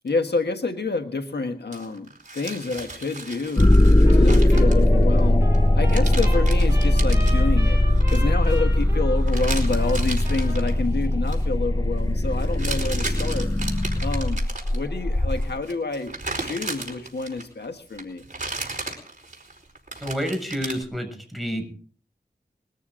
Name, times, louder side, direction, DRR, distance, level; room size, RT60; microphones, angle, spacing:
voice 1, 0.0-3.7 4.1-5.5 5.7-7.8 8.1-13.5 14.0-14.4 14.7-18.3, left 3 dB, 80° left, 7 dB, 1.5 m, -28 dB
sound 1, 1.7-5.2 5.5-5.6 5.9-7.4 8.0-8.6 9.3-10.8 11.1-11.4 12.4-14.8 15.3-17.7 18.0-20.8, right 3 dB, 50° right, 4.7 m, -35 dB
sound 2, 3.6-15.5, left 1 dB, 20° left, 1.0 m, -19 dB
Trumpet, 4.1-4.3 4.5-10.7, equal, 15° right, 7.8 m, -37 dB
voice 2, 20.0-21.7, equal, ahead, 5 dB, 6.7 m, -29 dB
22.0 x 14.0 x 3.8 m, 0.42 s
wide cardioid pair, 60°, 17 cm